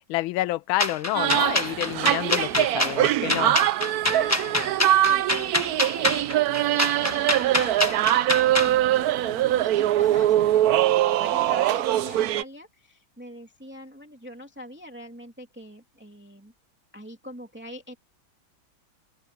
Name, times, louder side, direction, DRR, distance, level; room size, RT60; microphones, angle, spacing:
voice 1, 0.1-3.7, left 17 dB, 85° left, 1.4 m, -28 dB
sound 1, 0.8-8.7, left 1 dB, 10° left, 1.0 m, -26 dB
sound 2, 1.1-12.4, right 13 dB, 70° right, 0.9 m, -23 dB
voice 2, 2.5-3.0 3.9-10.9 11.2-16.5 16.9-18.0, left 1 dB, 5° right, 2.8 m, -43 dB
open air
omnidirectional pair, 2.2 m